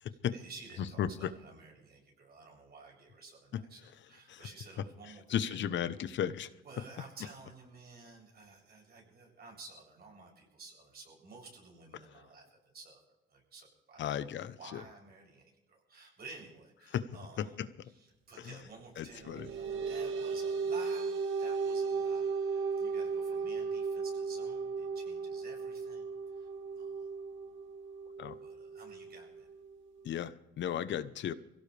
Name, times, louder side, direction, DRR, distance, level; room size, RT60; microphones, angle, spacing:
voice 1, 0.1-5.6 6.6-13.0 13.3-17.6 17.8-27.1 28.4-29.5, right 3 dB, 50° right, -1 dB, 7.8 m, -53 dB
voice 2, 1.0-1.3 4.3-4.4 5.3-6.5 14.0-14.8 16.9-17.1 17.4-17.5 18.4-18.5 19.0-19.5 28.2-28.4 30.0-31.3, left 9 dB, 70° left, 14 dB, 1.0 m, -34 dB
sound 1, 19.1-30.0, right 5 dB, 80° right, 1.8 m, -36 dB
23.5 x 17.0 x 3.5 m, 0.99 s
cardioid pair, 90°, 20 cm